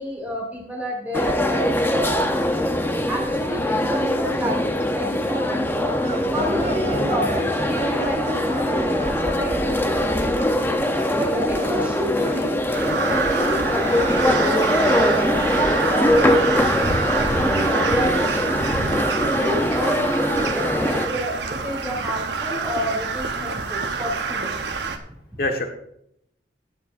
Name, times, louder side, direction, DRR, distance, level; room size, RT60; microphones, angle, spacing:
voice 1, 0.0-2.3 3.1-5.9 6.3-9.6 11.1-16.9 17.3-18.6 19.4-24.6, equal, 10° right, -3 dB, 2.9 m, -30 dB
sound 1, 1.1-21.1, left 1 dB, 10° left, 0.8 m, -22 dB
sound 2, 6.0-16.1 16.4-16.5 16.7-16.8 17.2-17.3 17.6-17.7 18.1-18.2 18.7-18.8 19.5-19.6, right 2 dB, 35° right, 1.2 m, -35 dB
voice 2, 9.6-10.1 19.3-19.5 25.4-25.6, left 1 dB, 55° left, 4 dB, 1.6 m, -28 dB
Crow, 12.7-25.0, right 4 dB, 65° right, 1.1 m, -26 dB
21.0 x 7.1 x 2.7 m, 0.74 s
head